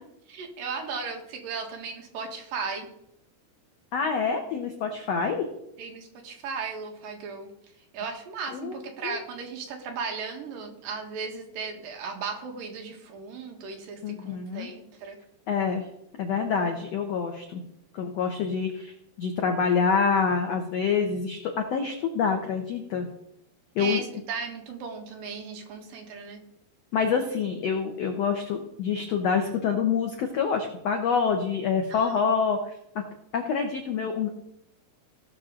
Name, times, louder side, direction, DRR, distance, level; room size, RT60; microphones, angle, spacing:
voice 1, 0.3-2.9 5.8-7.5 7.9-15.2 23.8-26.4 31.9-32.3, right 5 dB, 65° right, 2 dB, 3.1 m, -36 dB
voice 2, 3.9-5.4 8.5-8.8 9.0-9.2 14.0-14.7 15.5-15.8 16.2-17.6 17.9-23.1 23.7-24.0 26.9-32.6 32.9-33.0 33.3-34.3, left 6 dB, 90° left, 4 dB, 1.4 m, -26 dB
18.5 x 6.6 x 3.8 m, 0.77 s
omnidirectional pair, 4.5 m